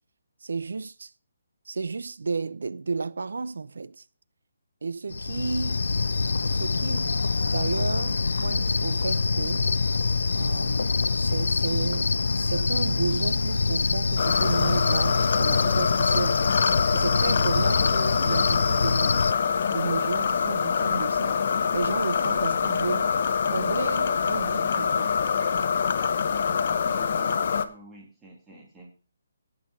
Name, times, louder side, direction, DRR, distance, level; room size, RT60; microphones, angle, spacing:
voice 1, 0.4-1.1 1.7-4.0 4.8-5.8 6.4-7.2 7.5-9.7 10.4-16.4 16.9-19.3 19.7-21.4 21.7-23.2 23.5-25.1, right 4 dB, 80° right, 0.7 m, -32 dB
Cricket, 5.1-19.3, left 4 dB, 80° left, 0.5 m, -25 dB
sound 1, 14.2-27.7, left 6 dB, 40° left, 0.8 m, -25 dB
voice 2, 26.8-28.9, right 2 dB, 5° right, 2.6 m, -49 dB
17.5 x 6.3 x 4.7 m
hypercardioid pair, 175°, 0 cm